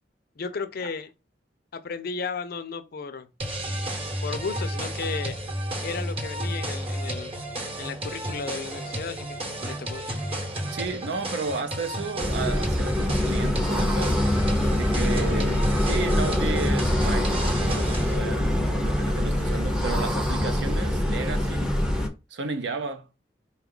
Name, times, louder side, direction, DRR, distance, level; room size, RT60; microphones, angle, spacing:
voice 1, 0.4-1.1 1.7-3.3 4.2-5.4 5.8-7.3 7.8-10.0 15.0-15.2, left 5 dB, 60° left, 0.5 m, -34 dB
sound 1, 3.4-18.2, right 1 dB, 30° right, 0.9 m, -32 dB
voice 2, 10.7-14.2 14.7-21.8 22.3-23.1, right 3 dB, 75° right, 0.6 m, -33 dB
sound 2, 12.2-22.1, left 1 dB, 5° right, 0.6 m, -24 dB
4.2 x 2.3 x 3.7 m
head